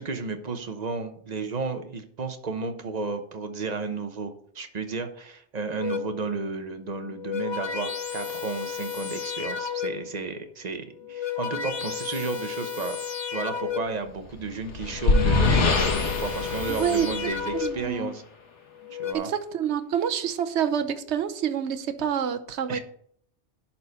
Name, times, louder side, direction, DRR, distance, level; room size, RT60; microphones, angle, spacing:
voice 1, 0.0-13.0 13.3-15.7 16.0-18.2 18.9-19.3 22.7-22.8, right 4 dB, 40° right, 8 dB, 0.9 m, -32 dB
sound 1, 5.8-6.3 7.0-10.2 10.9-14.1 14.8-18.0 18.7-19.1, left 7 dB, 45° left, 0.3 m, -33 dB
sound 2, 14.2-17.9, left 3 dB, 90° left, 1.5 m, -24 dB
voice 2, 16.7-17.1 17.5-18.1 19.1-22.8, right 8 dB, 75° right, 10 dB, 1.1 m, -27 dB
11.0 x 4.3 x 5.5 m, 0.63 s
omnidirectional pair, 1.2 m